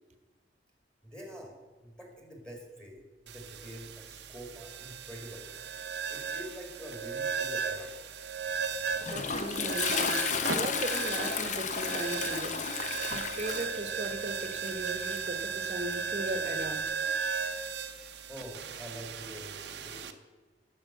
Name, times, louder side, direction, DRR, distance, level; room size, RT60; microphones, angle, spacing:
voice 1, 1.0-1.5 1.8-5.5 6.1-7.9 18.3-20.1, equal, 5° left, 0 dB, 2.1 m, -46 dB
sound 1, 3.3-20.1, right 6 dB, 65° right, 0.7 m, -36 dB
Toilet flush, 8.5-16.8, left 6 dB, 40° left, 0.7 m, -34 dB
voice 2, 9.0-12.6 13.1-16.9, right 1 dB, 35° right, 7 dB, 1.1 m, -38 dB
11.0 x 6.4 x 7.4 m, 1.3 s
head